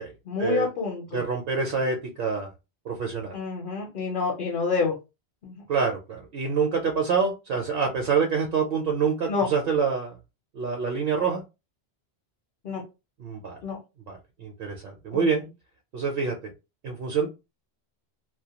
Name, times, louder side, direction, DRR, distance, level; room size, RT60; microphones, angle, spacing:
voice 1, 0.3-1.2 3.3-5.0 5.4-5.6 9.3-9.5 12.6-12.8 13.6-13.8 15.1-15.3, left 5 dB, 55° left, 0 dB, 0.8 m, -28 dB
voice 2, 1.1-2.5 2.8-3.4 5.7-10.2 10.5-11.4 13.2-13.6 14.1-15.4 15.9-16.5 16.8-17.3, right 5 dB, 65° right, 1 dB, 0.7 m, -26 dB
2.1 x 2.1 x 2.8 m, 0.27 s
omnidirectional pair, 1.1 m